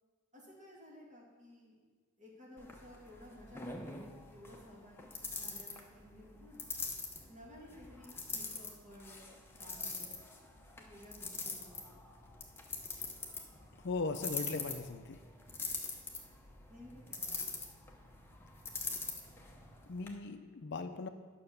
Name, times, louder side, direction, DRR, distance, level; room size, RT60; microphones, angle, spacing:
voice 1, 0.3-1.8 2.2-6.6 7.3-9.3 9.6-10.2 10.9-11.8 16.7-17.3, left 1 dB, 35° right, -4 dB, 2.5 m, -55 dB
sound 1, 2.6-20.1, left 3 dB, 10° left, 0.8 m, -44 dB
voice 2, 13.8-15.2 19.9-21.1, left 3 dB, 50° left, 8 dB, 0.5 m, -38 dB
9.9 x 5.8 x 6.8 m, 1.5 s
head